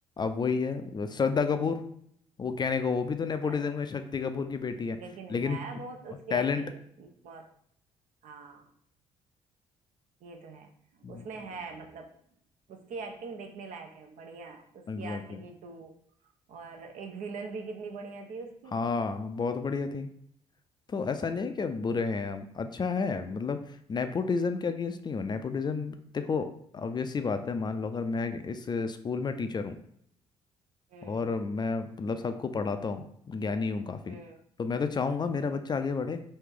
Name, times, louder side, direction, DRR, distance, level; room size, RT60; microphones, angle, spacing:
voice 1, 0.2-1.8 2.4-5.0 5.3-5.6 6.3-6.6 11.0-11.2 14.9-15.4 18.7-20.1 20.9-23.6 23.9-29.8 31.0-34.2 34.6-36.2, left 5 dB, 30° left, 9 dB, 0.4 m, -31 dB
voice 2, 5.0-7.5 8.2-8.7 10.2-12.1 12.7-15.9 16.5-18.8 30.9-31.3 34.1-34.4 35.3-35.6, right 4 dB, 60° right, 4 dB, 0.6 m, -43 dB
3.1 x 2.8 x 3.6 m, 0.67 s
hypercardioid pair, 50°, 14 cm